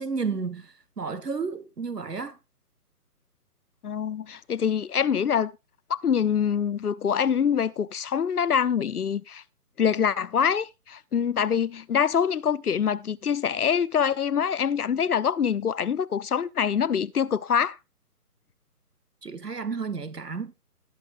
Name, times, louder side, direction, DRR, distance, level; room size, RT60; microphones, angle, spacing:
voice 1, 0.0-2.4 19.2-20.5, right 5 dB, 85° right, 1.6 m, -32 dB
voice 2, 3.8-5.5 5.9-9.4 9.8-17.8, left 7 dB, 70° left, 0.8 m, -25 dB
19.5 x 7.9 x 2.5 m
figure-of-eight pair, 145°, 46 cm